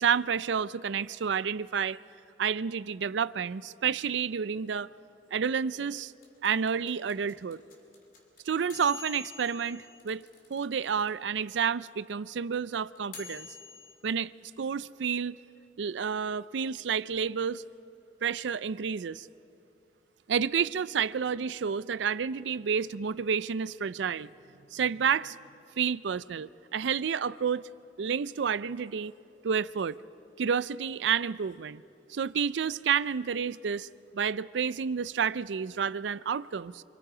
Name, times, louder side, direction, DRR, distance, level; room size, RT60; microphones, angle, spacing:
voice 1, 0.0-2.0 2.4-4.9 5.3-6.1 6.4-7.6 8.5-13.5 14.0-14.3 14.6-15.4 15.8-17.6 18.2-19.3 20.3-24.3 24.7-25.4 25.8-27.7 28.0-29.1 29.4-30.0 30.4-31.8 32.1-33.9 34.1-36.8, right 7 dB, 85° right, 0.4 m, -30 dB
sound 1, 6.0-11.1 11.4-11.5 11.6-13.9, left 6 dB, 50° left, 3.1 m, -46 dB
27.5 x 26.0 x 5.0 m
head